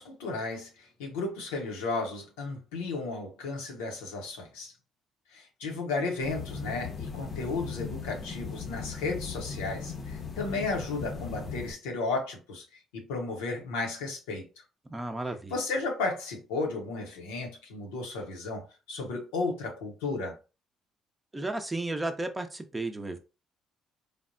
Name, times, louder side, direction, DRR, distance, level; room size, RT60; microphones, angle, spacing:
voice 1, 0.0-4.7 5.3-12.6 12.9-14.5 15.5-20.4, left 3 dB, 90° left, 0.8 m, -34 dB
sound 1, 6.2-11.7, left 5 dB, 45° left, 0.7 m, -38 dB
voice 2, 14.9-15.5 21.3-23.2, right 2 dB, 20° right, 0.6 m, -33 dB
3.3 x 2.1 x 2.5 m
supercardioid pair, 60°, 0 cm